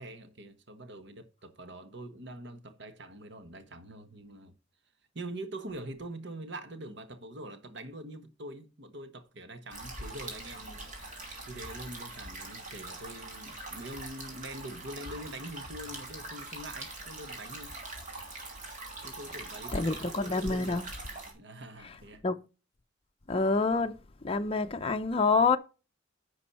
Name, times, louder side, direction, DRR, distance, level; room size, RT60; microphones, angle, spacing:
voice 1, 0.0-4.5 5.1-10.9 11.4-17.7 19.0-20.8 21.3-22.2, right 1 dB, 60° right, 1.3 m, -44 dB
sound 1, 9.7-21.3, right 2 dB, 40° right, 3.2 m, -43 dB
voice 2, 19.7-20.8 22.2-22.4 23.3-24.0 24.2-25.6, left 3 dB, 30° left, 0.6 m, -27 dB
10.5 x 6.2 x 4.2 m
head